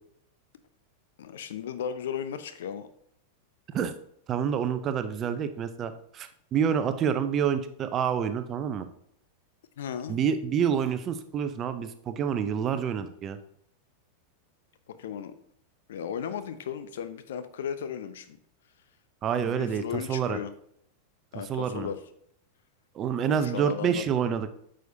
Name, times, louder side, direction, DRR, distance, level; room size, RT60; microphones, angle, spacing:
voice 1, 1.2-2.9 9.8-10.2 14.9-15.3 15.9-18.4 19.4-20.5 21.3-22.0 23.3-24.1, left 8 dB, 60° left, 11 dB, 0.6 m, -35 dB
voice 2, 4.3-8.9 10.1-13.4 19.2-20.4 21.5-21.9 22.9-24.5, right 7 dB, 30° right, 10 dB, 0.6 m, -28 dB
9.1 x 6.4 x 2.7 m, 0.69 s
figure-of-eight pair, 90°, 0 cm